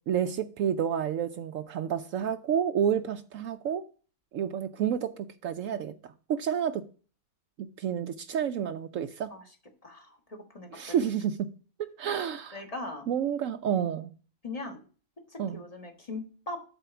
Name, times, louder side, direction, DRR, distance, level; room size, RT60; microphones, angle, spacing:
voice 1, 0.1-3.8 4.3-6.1 6.4-6.8 7.6-9.3 10.7-11.5 11.8-12.6 13.1-14.1 15.4-15.6, right 8 dB, 70° right, 0.9 m, -30 dB
voice 2, 9.8-11.1 12.5-13.1 14.4-14.8 15.3-16.6, left 2 dB, 25° left, 1.6 m, -40 dB
8.0 x 4.2 x 6.9 m
omnidirectional pair, 1.5 m